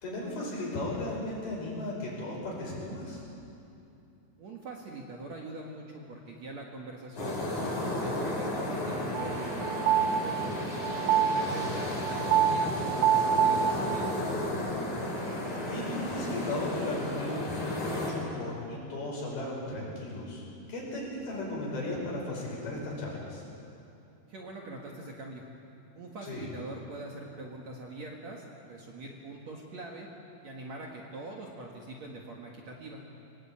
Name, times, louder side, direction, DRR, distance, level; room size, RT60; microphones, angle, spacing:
voice 1, 0.0-3.2 11.5-11.8 15.6-23.4 26.2-26.5, left 2 dB, 65° left, -4 dB, 7.5 m, -36 dB
voice 2, 4.4-7.4 7.8-10.5 11.1-14.1 24.3-25.4 25.9-30.1 30.4-33.0, right 2 dB, 50° right, -1 dB, 2.4 m, -43 dB
sound 1, 7.2-18.1, left 1 dB, 45° left, 6.4 m, -33 dB
sound 2, 9.1-14.3, right 9 dB, 90° right, 2.9 m, -27 dB
23.5 x 18.5 x 8.8 m, 2.8 s
omnidirectional pair, 4.7 m